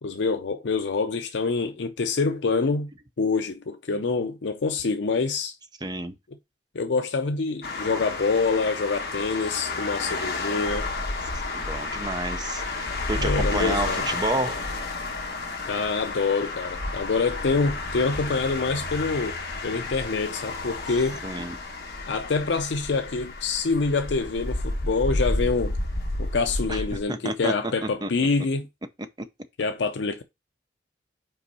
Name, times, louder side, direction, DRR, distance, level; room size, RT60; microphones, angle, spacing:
voice 1, 0.0-2.9 3.2-5.5 6.7-10.9 13.2-14.0 15.7-19.4 19.6-21.2 22.1-25.8 26.2-28.7 29.6-30.2, left 4 dB, 75° left, 0.5 m, -26 dB
voice 2, 5.8-6.1 11.5-14.7 21.2-21.6 26.7-26.8 27.1-28.1, right 2 dB, 20° right, 0.6 m, -30 dB
sound 1, 7.6-27.0, left 2 dB, 60° left, 1.3 m, -31 dB
5.6 x 4.4 x 4.1 m
head